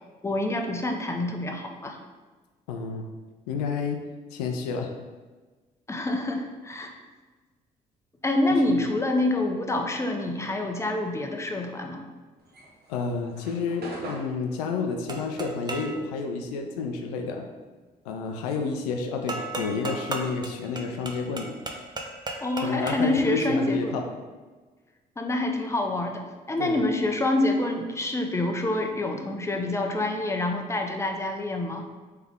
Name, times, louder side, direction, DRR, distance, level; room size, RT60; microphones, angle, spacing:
voice 1, 0.2-2.0 5.9-6.9 8.2-12.0 22.4-24.0 25.2-31.8, left 2 dB, 15° left, 3 dB, 0.7 m, -27 dB
voice 2, 2.7-3.1 3.5-4.0 4.3-4.9 12.9-17.5 18.1-21.6 22.6-24.0 26.6-26.8, left 4 dB, 85° left, 4 dB, 0.4 m, -30 dB
sound 1, 12.4-17.1 17.4-19.4, right 1 dB, 55° right, 0.9 m, -43 dB
sound 2, 15.1-16.0 19.3-23.2, right 2 dB, 20° right, 0.6 m, -35 dB
3.4 x 3.3 x 3.6 m, 1.3 s
hypercardioid pair, 50°, 19 cm